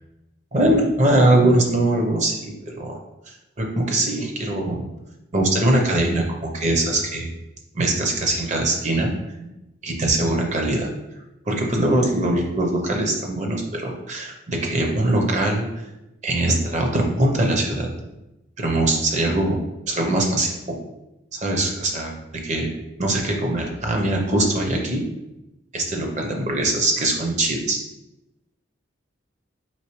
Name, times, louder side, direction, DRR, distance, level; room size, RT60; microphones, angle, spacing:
voice 1, 0.5-3.0 3.6-4.9 5.3-7.3 7.7-9.5 9.8-10.9 11.5-15.7 16.2-17.9 18.6-20.8 21.3-22.2 22.4-22.7 23.0-25.0 25.7-27.8, right 1 dB, 35° right, 1 dB, 0.6 m, -22 dB
4.5 x 3.3 x 3.0 m, 0.95 s
head